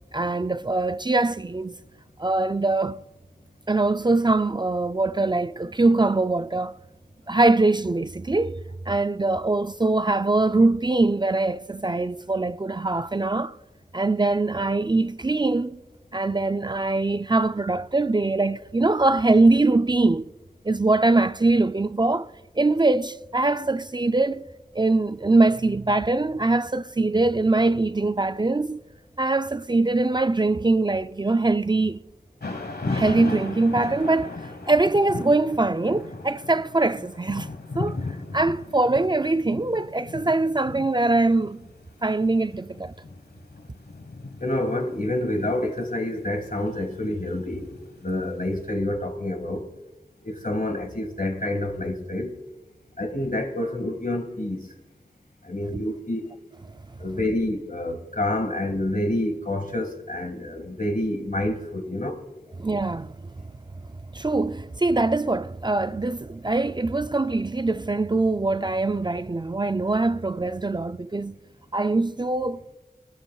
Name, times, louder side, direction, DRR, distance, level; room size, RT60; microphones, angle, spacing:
voice 1, 0.1-1.8 2.2-3.0 3.7-6.8 7.3-13.6 13.9-15.8 16.1-20.3 20.6-22.3 22.6-24.5 24.7-28.8 29.2-32.0 32.9-34.3 34.7-37.5 37.7-38.0 38.3-41.6 42.0-42.9 55.7-55.9 62.6-63.4 64.1-71.4 71.7-72.6, right 2 dB, 30° right, 0.4 m, -22 dB
Thunder / Rain, 32.4-48.4, left 3 dB, 90° left, 1.3 m, -37 dB
voice 2, 44.4-47.7 48.0-49.7 50.2-52.3 53.0-54.7 55.4-56.2 57.0-62.2, left 1 dB, 60° left, 1.9 m, -28 dB
24.0 x 13.0 x 2.3 m
wide cardioid pair, 45°, 16 cm